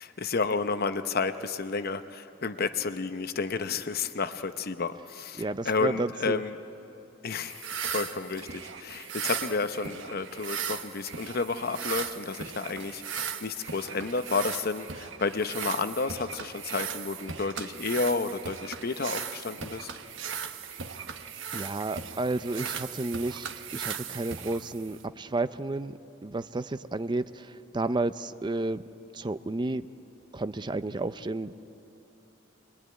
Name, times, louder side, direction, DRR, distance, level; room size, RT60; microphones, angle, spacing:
voice 1, 0.0-6.6 7.2-7.5 7.9-8.5 8.8-19.9, left 4 dB, 55° left, 10 dB, 0.8 m, -31 dB
voice 2, 5.4-6.4 21.5-23.5 23.7-28.8 29.1-29.9 30.3-31.5, right 2 dB, 25° right, 12 dB, 0.5 m, -31 dB
sound 1, 7.5-25.1, right 7 dB, 80° right, 1.1 m, -38 dB
24.5 x 21.0 x 9.5 m, 3.0 s
head